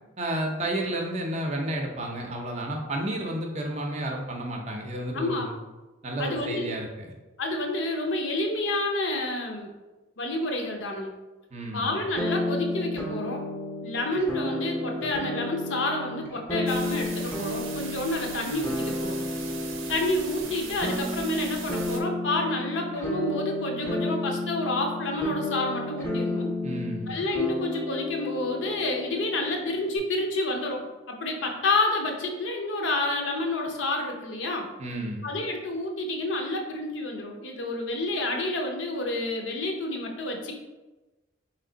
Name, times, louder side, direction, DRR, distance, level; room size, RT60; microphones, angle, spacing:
voice 1, 0.2-5.6 6.0-7.1 11.5-12.0 26.6-27.2 34.8-35.3, right 1 dB, 35° right, 1 dB, 0.5 m, -31 dB
voice 2, 5.1-5.5 6.2-6.7 7.4-9.7 10.2-11.1 11.7-13.4 13.8-19.2 19.9-26.5 27.1-34.7 35.2-40.5, left 2 dB, 65° left, 3 dB, 0.6 m, -29 dB
sound 1, 12.2-30.0, left 1 dB, 10° left, 0.5 m, -32 dB
sound 2, 16.7-22.0, right 5 dB, 80° right, 0.6 m, -40 dB
3.4 x 3.2 x 3.8 m, 1.1 s
head